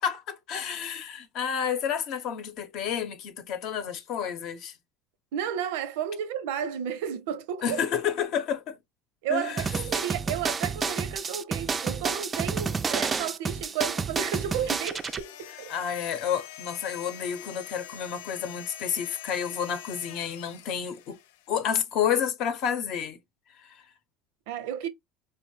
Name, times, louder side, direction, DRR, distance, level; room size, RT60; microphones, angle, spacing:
voice 1, 0.0-4.8 7.6-8.8 9.3-9.7 15.7-21.2 21.5-23.2 23.5-23.9, left 8 dB, 55° left, 0.8 m, -30 dB
voice 2, 5.3-7.8 9.2-15.7 24.5-24.9, right 9 dB, 85° right, 0.6 m, -32 dB
sound 1, 9.6-15.2, right 5 dB, 20° right, 0.3 m, -30 dB
sound 2, 14.3-21.7, left 12 dB, 90° left, 0.3 m, -45 dB
4.4 x 2.1 x 3.1 m
cardioid pair, 135°, 0 cm